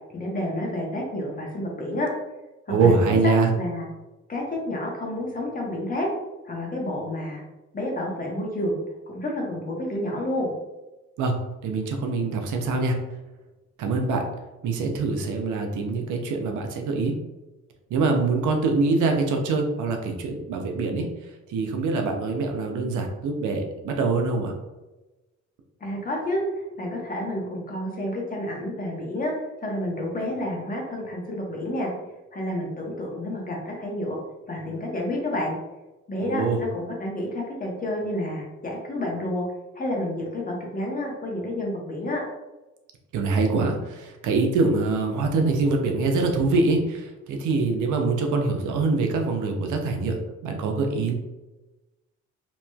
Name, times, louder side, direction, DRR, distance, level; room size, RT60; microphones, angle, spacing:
voice 1, 0.1-2.1 2.7-3.3 3.6-3.9 4.3-6.1 6.4-7.4 7.7-8.8 9.1-10.5 25.8-29.3 29.6-31.9 32.3-34.2 34.5-35.5 36.1-39.4 39.7-42.2, left 1 dB, 30° left, -1 dB, 0.9 m, -29 dB
voice 2, 2.7-3.5 11.2-11.3 11.6-12.9 13.8-14.3 14.6-17.1 17.9-21.1 21.5-24.5 36.2-36.6 43.1-51.1, right 3 dB, 75° right, 4 dB, 0.6 m, -24 dB
3.0 x 2.9 x 2.3 m, 1.1 s
cardioid pair, 90°, 30 cm